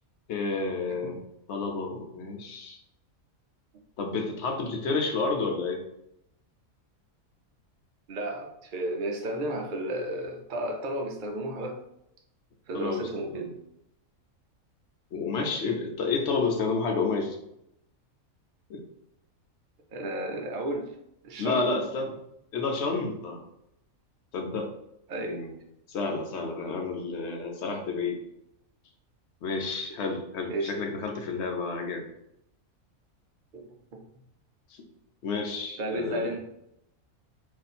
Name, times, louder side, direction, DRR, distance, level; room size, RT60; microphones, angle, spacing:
voice 1, 0.3-1.2 1.5-2.8 4.0-5.8 12.7-13.0 13.3-13.5 15.1-17.4 18.7-18.8 21.4-22.1 22.5-23.4 24.3-24.7 25.2-25.5 25.9-28.2 29.4-32.1 35.2-36.3, left 4 dB, 60° left, 3 dB, 0.8 m, -30 dB
voice 2, 8.1-11.8 12.7-13.5 19.9-20.9 21.2-21.7 25.1-25.4 30.5-30.7 33.5-33.6 35.8-36.4, right 1 dB, 55° right, 1 dB, 0.5 m, -32 dB
2.7 x 2.5 x 4.1 m, 0.79 s
omnidirectional pair, 1.5 m